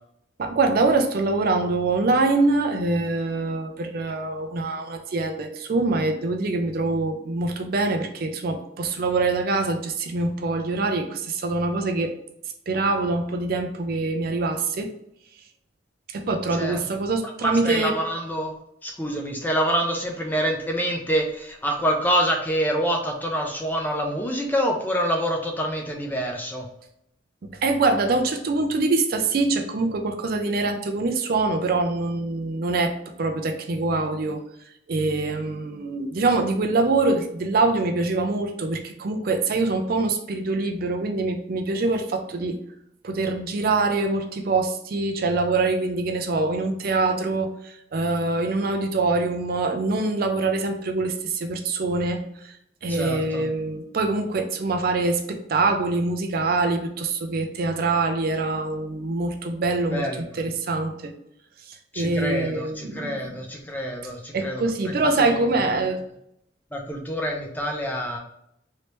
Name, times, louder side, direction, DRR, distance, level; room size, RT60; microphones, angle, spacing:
voice 1, 0.4-12.2 12.7-14.9 16.1-18.0 27.6-34.4 34.9-42.6 43.0-52.5 52.8-61.1 61.7-63.4 64.3-66.0, right 3 dB, 50° right, 4 dB, 0.4 m, -24 dB
voice 2, 17.4-18.5 18.8-26.7 52.9-53.5 59.9-60.3 61.9-64.6 65.0-65.5 66.7-68.2, equal, 10° left, 1 dB, 0.4 m, -26 dB
3.2 x 2.8 x 3.0 m, 0.76 s
head